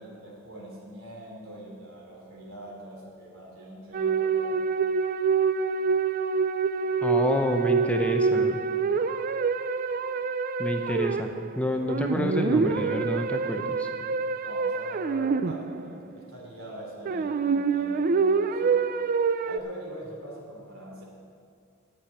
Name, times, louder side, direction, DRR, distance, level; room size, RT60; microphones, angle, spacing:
voice 1, 0.0-4.6 14.4-18.8 19.4-21.0, right 1 dB, 85° right, -2 dB, 3.5 m, -43 dB
sound 1, 3.9-11.5 11.9-16.0 17.0-19.6, right 5 dB, 45° right, 0.4 m, -26 dB
voice 2, 7.0-8.6 10.6-13.9, equal, 5° left, 4 dB, 0.6 m, -28 dB
9.6 x 7.3 x 8.9 m, 2.3 s
head